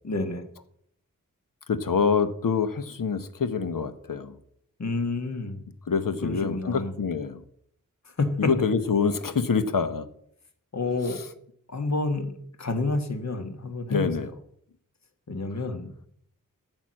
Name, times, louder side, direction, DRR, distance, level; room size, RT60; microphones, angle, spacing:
voice 1, 0.0-0.4 4.8-5.6 6.2-6.9 8.0-8.5 10.7-11.2 11.7-14.3 15.3-15.9, left 3 dB, 50° left, 8 dB, 1.5 m, -29 dB
voice 2, 1.7-4.4 5.9-7.4 8.4-10.1 13.9-14.3, left 5 dB, 70° left, 11 dB, 1.0 m, -26 dB
8.9 x 8.0 x 7.5 m, 0.69 s
wide cardioid pair, 85°, 34 cm